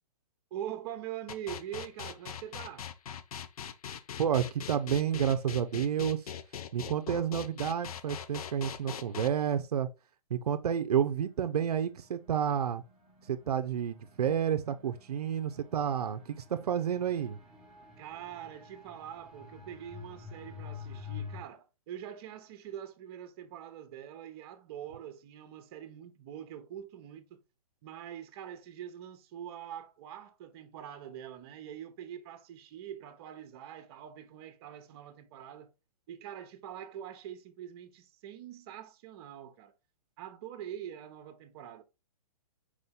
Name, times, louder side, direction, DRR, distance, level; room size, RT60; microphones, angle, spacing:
voice 1, 0.5-2.9 18.0-27.4 27.8-35.7 36.1-39.7 40.2-41.8, right 10 dB, 40° right, 0.8 m, -44 dB
sound 1, 1.3-9.3, left 8 dB, 70° left, 0.6 m, -41 dB
voice 2, 4.2-6.3 6.7-9.9 10.3-12.8 13.3-17.4, right 8 dB, 85° right, 0.5 m, -30 dB
sound 2, 10.9-21.4, left 6 dB, ahead, 1.0 m, -49 dB
4.9 x 2.7 x 3.5 m
hypercardioid pair, 140°, 19 cm